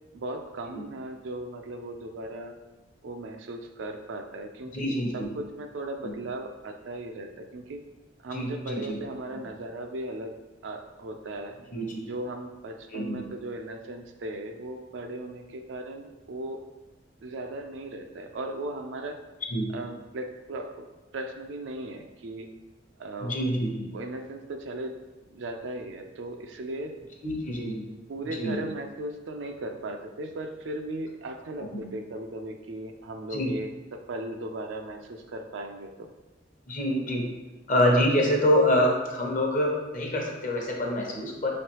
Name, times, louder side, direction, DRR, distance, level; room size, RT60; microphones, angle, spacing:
voice 1, 0.1-2.6 3.0-7.8 8.2-10.4 10.6-11.6 12.0-16.6 17.2-19.2 19.7-20.9 21.1-22.5 23.0-23.4 23.9-25.0 25.3-27.0 28.1-33.7 34.1-36.1, right 2 dB, 80° right, 5 dB, 0.4 m, -37 dB
voice 2, 4.7-5.3 6.0-6.1 8.3-9.0 11.7-12.0 12.9-13.2 19.5-19.7 23.2-23.9 27.2-27.9 28.4-28.6 33.3-33.5 36.7-37.2 37.7-41.5, equal, 45° left, -1 dB, 0.8 m, -26 dB
5.3 x 3.2 x 2.9 m, 1.1 s
head